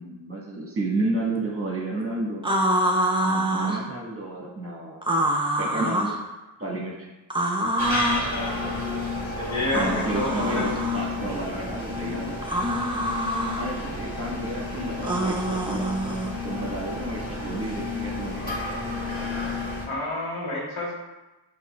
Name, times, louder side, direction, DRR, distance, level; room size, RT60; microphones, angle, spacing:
voice 1, 0.0-2.4 3.2-5.0 5.6-6.2 6.6-7.1 9.7-12.6 13.6-15.9 16.4-18.6, right 2 dB, 30° right, -3 dB, 1.1 m, -31 dB
sound 1, 2.4-3.8 5.0-6.2 7.3-8.3 9.7-11.1 12.4-13.6 15.0-16.3, right 1 dB, 10° right, 0.5 m, -25 dB
sound 2, 7.8-19.9, left 2 dB, 20° left, 1.4 m, -31 dB
voice 2, 9.3-10.7 19.9-20.9, left 2 dB, 85° left, -5 dB, 1.2 m, -29 dB
7.0 x 2.4 x 2.2 m, 1.0 s
wide cardioid pair, 70°, 49 cm